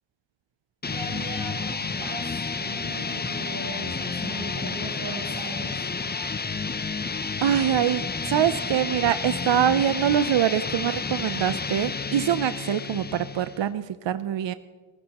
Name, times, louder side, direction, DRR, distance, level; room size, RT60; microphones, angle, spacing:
sound 1, 0.8-13.7, left 4 dB, 20° left, 0.6 m, -31 dB
voice 1, 0.9-5.8, right 2 dB, 45° right, -5 dB, 3.1 m, -38 dB
voice 2, 7.4-14.5, right 10 dB, 60° right, 13 dB, 0.6 m, -24 dB
28.0 x 14.5 x 2.9 m, 1.5 s
cardioid pair, 65°, 50 cm